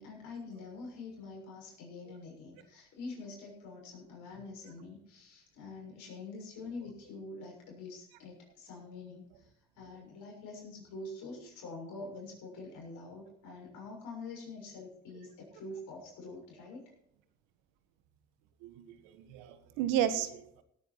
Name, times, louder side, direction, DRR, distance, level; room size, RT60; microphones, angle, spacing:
voice 1, 0.0-9.5 9.7-16.9, left 3 dB, 75° left, -1 dB, 6.9 m, -46 dB
voice 2, 18.6-20.6, right 10 dB, 85° right, 11 dB, 1.4 m, -33 dB
17.5 x 9.4 x 4.5 m, 0.73 s
hypercardioid pair, 55°, 31 cm